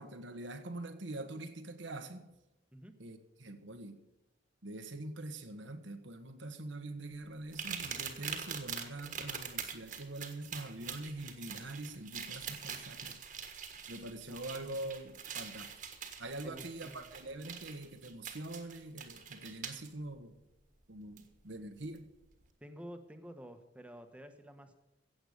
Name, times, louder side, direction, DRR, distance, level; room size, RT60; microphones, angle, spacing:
voice 1, 0.0-2.3 3.0-4.0 4.6-13.2 13.9-15.7 16.2-20.4 20.9-22.1, right 2 dB, 90° right, 1.4 m, -44 dB
sound 1, 7.5-19.9 21.2-21.3 21.8-22.0, right 7 dB, 45° right, 1.5 m, -44 dB
voice 2, 16.4-17.1 22.6-24.8, equal, 5° right, 1.2 m, -50 dB
16.0 x 8.0 x 6.8 m
head